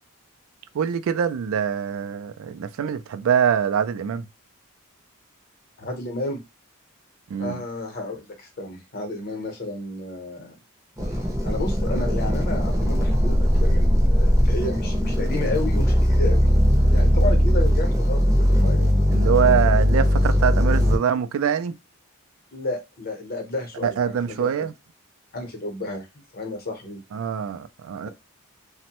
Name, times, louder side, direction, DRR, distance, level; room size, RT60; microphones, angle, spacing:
voice 1, 0.7-4.2 7.3-7.6 19.1-21.7 23.8-24.7 27.1-28.1, right 8 dB, 70° right, 0.3 m, -24 dB
voice 2, 5.8-6.4 7.4-10.6 11.1-11.2 11.4-16.5 16.9-19.3 22.5-24.7 25.3-26.1 26.3-27.0, left 2 dB, 45° left, 0.8 m, -32 dB
sound 1, 11.0-21.0, equal, 15° right, 0.6 m, -19 dB
3.0 x 2.1 x 2.9 m
head